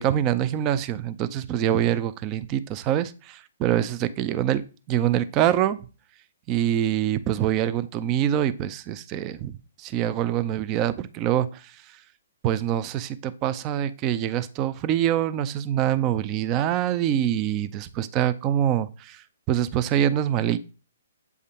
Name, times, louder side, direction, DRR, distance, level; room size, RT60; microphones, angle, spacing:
voice 1, 0.0-5.8 6.5-12.0 12.4-20.6, right 11 dB, 30° right, 13 dB, 0.5 m, -25 dB
8.2 x 3.6 x 4.2 m, 0.35 s
hypercardioid pair, 130°, 0 cm